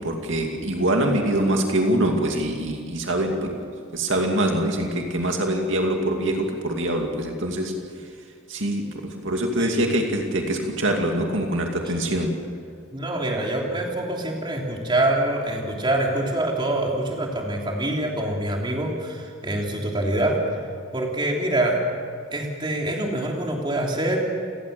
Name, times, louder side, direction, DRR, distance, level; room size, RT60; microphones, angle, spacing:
voice 1, 0.0-3.5 3.9-7.7 8.5-12.3, right 1 dB, 65° right, 2 dB, 2.4 m, -24 dB
voice 2, 9.6-9.9 12.9-20.4 20.9-21.8 22.3-24.3, right 1 dB, 25° right, 0 dB, 3.3 m, -25 dB
29.0 x 18.5 x 6.9 m, 2.2 s
head